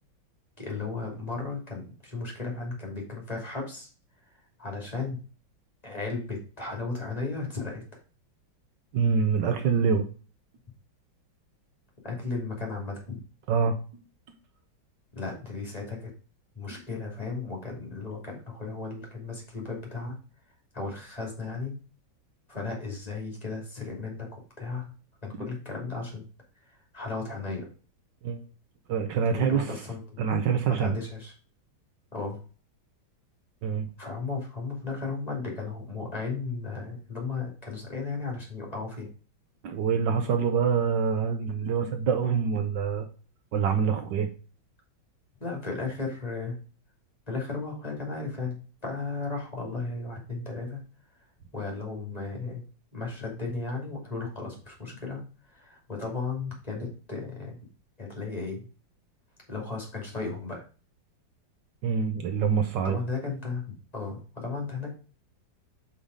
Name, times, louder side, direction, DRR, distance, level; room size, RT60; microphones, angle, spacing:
voice 1, 0.6-3.9 4.3-5.2 5.8-7.8 12.0-13.2 15.1-16.1 16.5-20.2 20.7-21.7 22.5-24.9 25.2-26.2 26.7-27.7 29.3-30.2 30.7-31.3 32.1-32.4 34.0-39.1 45.4-46.6 47.3-50.8 51.5-52.6 52.9-55.2 55.5-57.6 58.0-58.7 59.5-60.7 62.8-64.9, left 4 dB, 20° left, -1 dB, 2.6 m, -35 dB
voice 2, 8.9-10.1 13.5-13.8 28.2-28.4 28.9-29.7 30.2-31.0 33.6-33.9 39.6-43.1 43.5-44.3 61.8-63.0, right 6 dB, 70° right, 6 dB, 1.4 m, -25 dB
5.5 x 5.1 x 5.0 m, 0.36 s
omnidirectional pair, 2.2 m